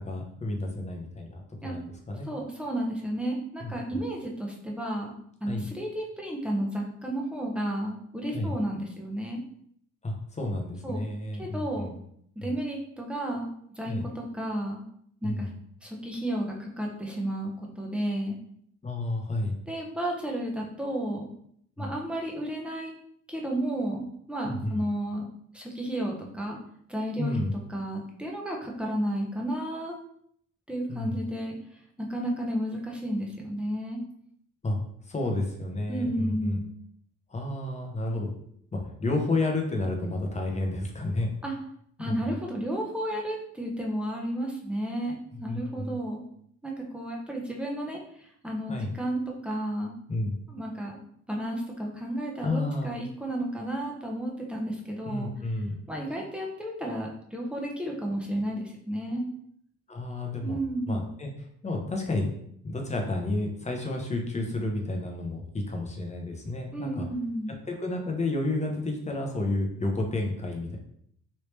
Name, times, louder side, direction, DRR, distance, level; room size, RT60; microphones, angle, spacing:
voice 1, 0.0-2.3 3.6-4.0 5.5-5.6 8.3-8.5 10.0-12.0 12.4-12.5 13.8-14.0 15.2-15.5 18.8-19.5 21.8-21.9 24.4-24.8 27.2-27.5 30.9-31.2 34.6-34.8 35.0-36.6 37.3-38.3 38.7-41.4 42.0-42.3 45.5-46.0 48.7-48.9 50.1-50.3 52.4-53.0 55.0-55.8 59.9-60.6 60.9-61.3 61.6-62.3 62.6-67.1 67.7-70.8, left 2 dB, 25° left, 1 dB, 0.8 m, -31 dB
voice 2, 2.2-5.1 5.4-9.4 10.8-11.1 11.4-11.9 12.4-14.9 15.2-15.5 15.8-18.4 19.7-21.3 21.8-22.9 23.3-25.2 25.5-26.6 26.9-27.4 27.7-30.0 30.7-31.6 32.0-34.0 35.9-36.7 41.4-41.5 42.0-46.2 46.6-49.9 50.5-51.0 51.3-55.3 55.9-59.3 60.4-61.1 66.7-67.5, right 1 dB, 5° right, -2 dB, 0.9 m, -32 dB
3.2 x 2.8 x 3.2 m, 0.68 s
cardioid pair, 90°, 30 cm